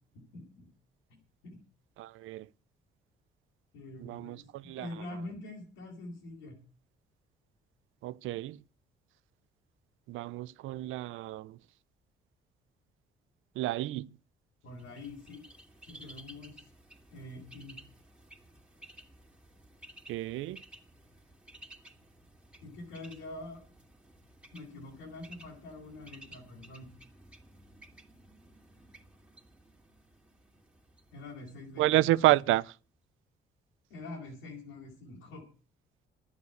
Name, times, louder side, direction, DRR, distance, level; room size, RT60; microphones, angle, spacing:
voice 1, 0.1-0.7 1.4-1.6 3.7-6.6 14.6-15.4 15.8-16.7 17.1-17.8 22.6-23.6 24.5-26.9 31.1-32.3 33.9-35.4, left 2 dB, 90° left, 4.4 m, -45 dB
voice 2, 2.0-2.5 4.0-4.9 8.0-8.6 10.1-11.6 13.6-14.1 20.1-20.6 31.8-32.7, right 16 dB, 90° right, 0.5 m, -29 dB
Bird, 14.7-32.5, right 1 dB, 5° right, 2.3 m, -56 dB
11.0 x 8.3 x 8.1 m
cardioid pair, 90°, 20 cm